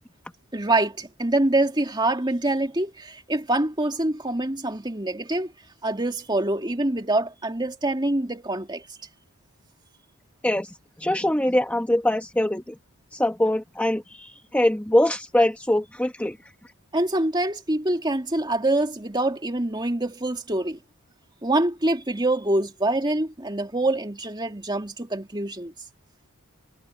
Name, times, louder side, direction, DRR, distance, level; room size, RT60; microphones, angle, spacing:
voice 1, 0.5-5.5 5.8-8.8 16.9-20.8 21.4-25.7, right 2 dB, 20° right, 2.4 m, -25 dB
voice 2, 11.0-12.8 13.1-16.4, left 1 dB, 5° left, 1.1 m, -23 dB
head